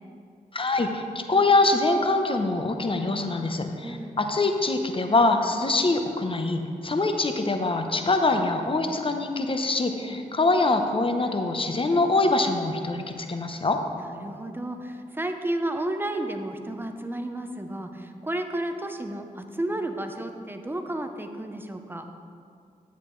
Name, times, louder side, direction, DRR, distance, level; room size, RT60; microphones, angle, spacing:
voice 1, 0.5-13.8, left 2 dB, 35° left, 6 dB, 0.8 m, -24 dB
voice 2, 3.8-4.2 10.0-10.2 14.0-22.1, right 1 dB, 15° right, 6 dB, 0.7 m, -32 dB
10.0 x 8.1 x 3.2 m, 2.3 s
cardioid pair, 55°, 15 cm